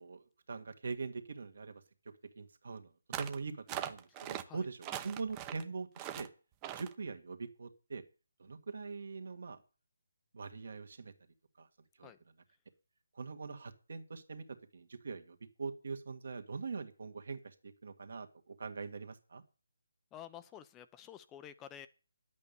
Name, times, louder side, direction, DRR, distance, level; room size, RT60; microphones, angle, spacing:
voice 1, 0.0-1.8 2.4-2.9 3.2-6.3 6.8-8.0 8.4-9.6 10.3-11.1 11.6-11.7 12.0-12.1 13.2-19.4, right 4 dB, 60° right, 7 dB, 1.9 m, -43 dB
sound 1, 3.1-3.4 3.7-4.4 4.8-5.6 6.0-6.3 6.6-6.9, right 11 dB, 20° right, 0.8 m, -41 dB
voice 2, 20.1-21.9, left 10 dB, 15° left, 11 dB, 0.5 m, -50 dB
10.5 x 8.4 x 7.0 m, 0.36 s
figure-of-eight pair, 160°, 0 cm